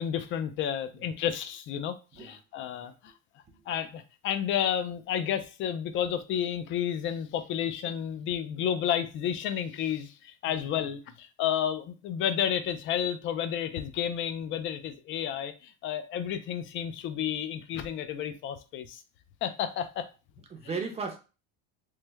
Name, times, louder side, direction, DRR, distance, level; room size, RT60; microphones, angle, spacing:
voice 1, 0.0-3.1 3.7-19.0 19.4-20.1 20.6-20.7, left 9 dB, 35° left, 0.4 m, -31 dB
voice 2, 10.5-10.9 20.5-21.2, right 4 dB, 20° right, 0.6 m, -37 dB
3.2 x 2.1 x 3.3 m
cardioid pair, 140°, 35 cm